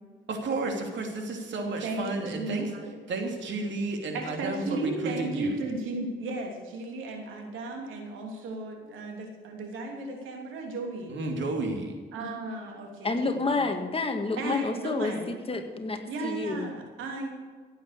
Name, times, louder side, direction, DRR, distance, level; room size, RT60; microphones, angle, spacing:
voice 1, 0.3-2.7 3.1-5.6 11.1-11.9, right 2 dB, 65° right, 3 dB, 2.9 m, -32 dB
voice 2, 1.5-2.9 4.1-11.1 12.1-13.7 14.4-15.4 16.1-17.3, right 2 dB, 85° right, 2 dB, 3.1 m, -35 dB
voice 3, 13.0-16.7, left 3 dB, 30° left, 6 dB, 1.8 m, -29 dB
16.0 x 8.9 x 6.7 m, 1.5 s
cardioid pair, 90°, 20 cm